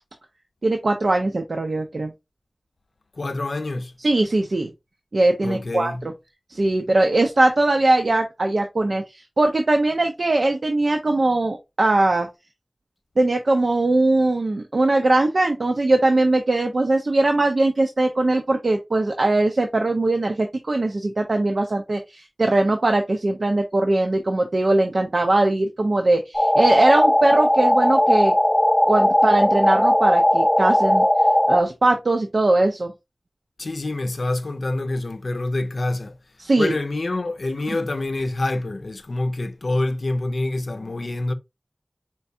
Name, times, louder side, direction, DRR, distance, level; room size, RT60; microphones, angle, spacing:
voice 1, 0.6-2.1 4.0-4.7 5.1-6.1 6.5-12.3 13.2-28.3 28.9-31.0 31.5-32.9 36.4-36.7 37.7-37.8, right 2 dB, 85° right, 0.6 m, -20 dB
voice 2, 3.2-3.9 5.4-6.0 33.6-36.2 36.6-41.3, left 2 dB, 85° left, 0.5 m, -26 dB
sound 1, 26.3-31.6, left 1 dB, 20° left, 0.6 m, -18 dB
4.6 x 3.4 x 2.6 m
wide cardioid pair, 60°, 0 cm